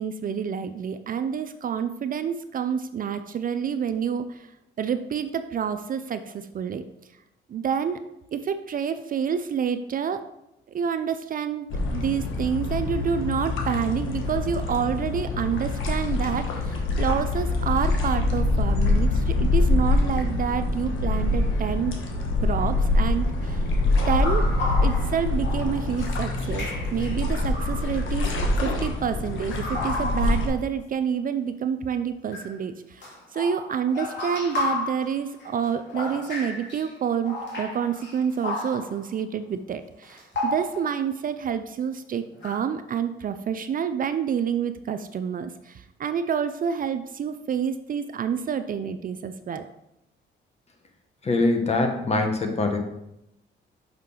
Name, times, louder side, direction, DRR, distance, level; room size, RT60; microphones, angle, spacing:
voice 1, 0.0-4.5 4.8-6.8 7.5-8.0 8.3-10.2 10.7-21.9 22.4-23.6 24.1-24.5 24.8-28.3 28.6-49.7, right 7 dB, 45° right, 10 dB, 0.4 m, -28 dB
sound 1, 11.7-30.5, left 2 dB, 80° left, 1.2 m, -25 dB
sound 2, 23.9-26.1 26.5-28.0 29.6-30.6 32.3-32.5 33.0-36.9 37.3-39.1 40.0-41.0 42.3-42.6, left 2 dB, 65° left, 2.1 m, -32 dB
voice 2, 51.2-52.8, left 2 dB, 30° left, 5 dB, 1.1 m, -23 dB
5.9 x 5.5 x 3.8 m, 0.84 s
cardioid pair, 90°, 20 cm